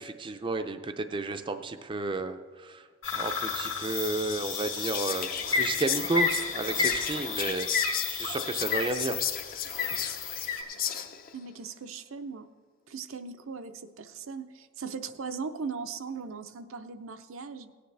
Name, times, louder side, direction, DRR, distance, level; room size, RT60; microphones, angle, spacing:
voice 1, 0.0-2.8 3.1-7.7 8.1-9.2, right 3 dB, 25° right, 8 dB, 0.4 m, -32 dB
sound 1, 3.0-10.6, left 5 dB, 65° left, 1.9 m, -31 dB
Whispering, 3.8-11.4, left 8 dB, 45° left, 0.6 m, -36 dB
voice 2, 11.3-12.5 12.9-17.7, right 5 dB, 75° right, 8 dB, 0.6 m, -39 dB
17.5 x 9.4 x 3.3 m, 1.5 s
head